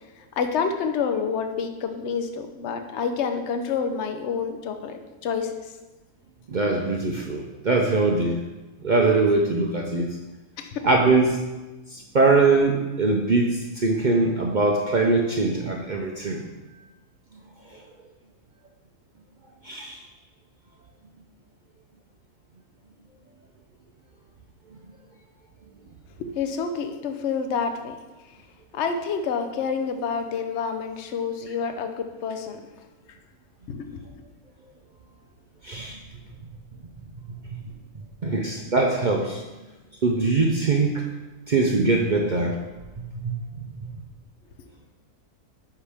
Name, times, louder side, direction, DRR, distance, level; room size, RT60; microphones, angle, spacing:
voice 1, 0.4-5.7 10.6-10.8 26.2-28.0 28.7-32.6 33.7-34.2, left 6 dB, 55° left, 7 dB, 0.9 m, -28 dB
voice 2, 6.5-8.4 8.8-10.1 10.8-11.4 11.9-16.4 17.7-17.8 19.6-20.0 35.6-36.0 37.5-37.6 38.2-39.4 40.0-41.1 41.5-42.6 43.2-43.7, right 3 dB, 55° right, 1 dB, 0.5 m, -22 dB
9.7 x 5.8 x 3.5 m, 1.1 s
omnidirectional pair, 1.6 m